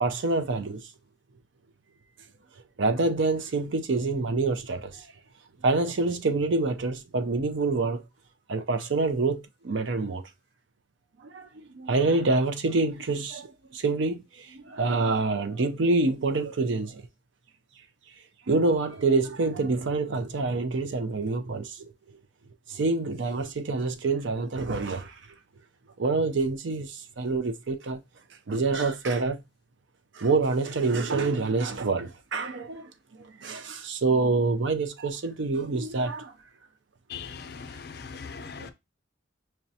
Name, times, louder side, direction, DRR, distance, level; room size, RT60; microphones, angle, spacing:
voice 1, 0.0-0.8 2.8-5.1 5.6-8.0 8.5-10.2 11.2-17.0 18.5-21.9 22.7-25.2 26.0-28.0 28.5-29.4 30.1-36.3 38.4-38.7, right 3 dB, 70° right, 0.5 m, -27 dB
voice 2, 37.1-38.7, left 6 dB, 55° left, 0.5 m, -40 dB
5.9 x 2.2 x 2.7 m
head